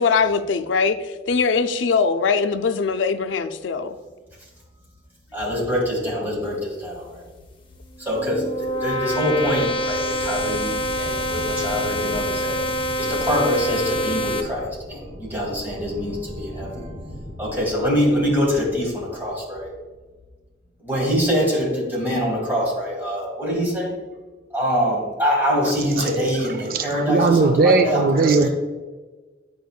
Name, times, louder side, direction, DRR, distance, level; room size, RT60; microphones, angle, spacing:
voice 1, 0.0-3.9, left 5 dB, 85° left, 9 dB, 0.4 m, -21 dB
voice 2, 5.3-7.3 8.0-12.6 13.0-16.9 17.4-19.7 20.8-24.0 24.5-28.5, equal, 10° right, -3 dB, 1.7 m, -24 dB
sound 1, 7.9-14.4, equal, 25° left, 0.6 m, -26 dB
sound 2, 7.9-19.9, equal, 5° left, 2.0 m, -39 dB
voice 3, 26.7-28.5, right 3 dB, 50° right, 6 dB, 0.4 m, -18 dB
9.3 x 5.0 x 2.3 m, 1.3 s
head